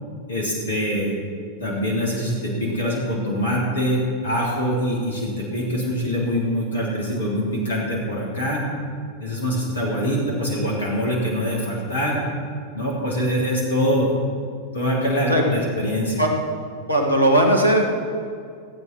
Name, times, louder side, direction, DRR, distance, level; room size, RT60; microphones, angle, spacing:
voice 1, 0.3-1.1 1.6-8.6 9.2-12.2 12.7-14.1 14.7-16.2, equal, 70° left, -4 dB, 3.5 m, -24 dB
voice 2, 16.9-17.8, right 1 dB, 85° left, 2 dB, 1.9 m, -17 dB
16.0 x 8.3 x 6.2 m, 2.2 s
figure-of-eight pair, 90°, 0 cm